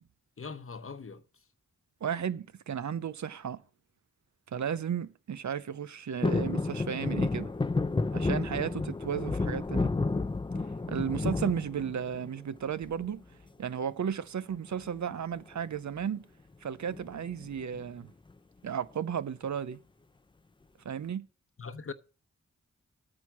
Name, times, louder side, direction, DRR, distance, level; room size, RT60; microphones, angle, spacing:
voice 1, 0.4-1.2 21.6-21.9, left 5 dB, 45° left, 0.9 m, -41 dB
voice 2, 2.0-3.6 4.5-7.5 8.1-9.9 10.9-13.2 13.6-16.3 16.6-18.1 18.6-19.8 20.8-21.3, right 8 dB, 70° right, 0.6 m, -34 dB
sound 1, 6.2-12.4 12.8-13.4 14.7-15.1 15.4-15.5 15.8-16.1 16.9-17.8 18.3-18.4, left 3 dB, 15° left, 0.4 m, -31 dB
9.0 x 6.2 x 7.1 m
cardioid pair, 55°, 30 cm